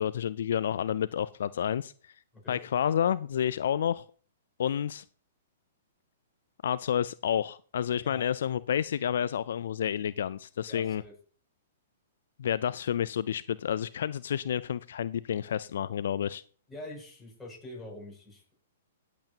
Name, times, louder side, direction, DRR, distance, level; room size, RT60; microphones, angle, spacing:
voice 1, 0.0-2.1 2.5-4.0 4.6-5.0 6.6-11.0 12.4-16.4, left 9 dB, 70° left, 17 dB, 0.4 m, -30 dB
voice 2, 7.9-8.3 10.7-11.1 16.7-18.5, left 1 dB, 10° left, -3 dB, 6.5 m, -45 dB
17.0 x 8.0 x 2.8 m, 0.41 s
hypercardioid pair, 125°, 0 cm